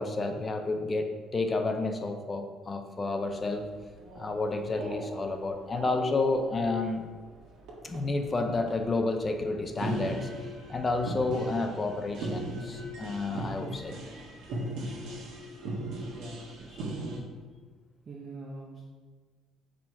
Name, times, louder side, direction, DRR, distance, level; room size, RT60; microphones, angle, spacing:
voice 1, 0.0-3.7 4.2-7.0 7.8-13.9 16.7-16.8, left 3 dB, 20° left, 5 dB, 0.5 m, -30 dB
sound 1, 3.2-17.2, right 1 dB, 70° right, 1.6 m, -39 dB
voice 2, 16.1-17.3 18.0-18.8, right 2 dB, 35° right, -2 dB, 0.9 m, -44 dB
7.2 x 5.0 x 4.7 m, 1.4 s
cardioid pair, 155°, 0 cm